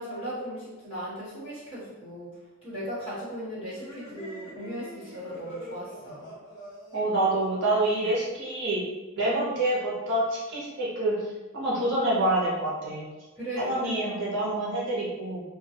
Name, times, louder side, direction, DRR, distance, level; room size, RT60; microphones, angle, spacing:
voice 1, 0.0-2.4 2.6-6.3 13.4-14.2, equal, 25° left, -11 dB, 1.2 m, -37 dB
sound 1, 3.7-8.4, right 1 dB, 55° left, 0.7 m, -45 dB
voice 2, 6.9-8.8 9.2-11.3 11.5-13.1 13.6-15.4, right 1 dB, 55° right, -6 dB, 0.7 m, -27 dB
2.2 x 2.2 x 2.8 m, 1.2 s
head